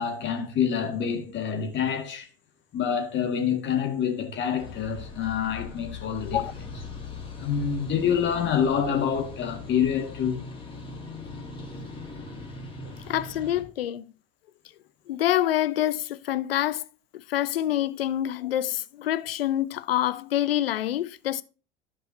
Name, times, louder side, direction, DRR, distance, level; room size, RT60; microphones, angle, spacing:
voice 1, 0.0-2.3 2.7-6.4 7.4-10.5 12.8-13.0, left 8 dB, 40° left, 1.9 m, -27 dB
sound 1, 4.6-13.6, left 3 dB, 15° left, 2.5 m, -40 dB
voice 2, 13.1-14.0 15.1-16.9 17.1-21.4, left 12 dB, 75° left, 0.5 m, -26 dB
13.0 x 5.4 x 2.8 m
figure-of-eight pair, 70°, 29 cm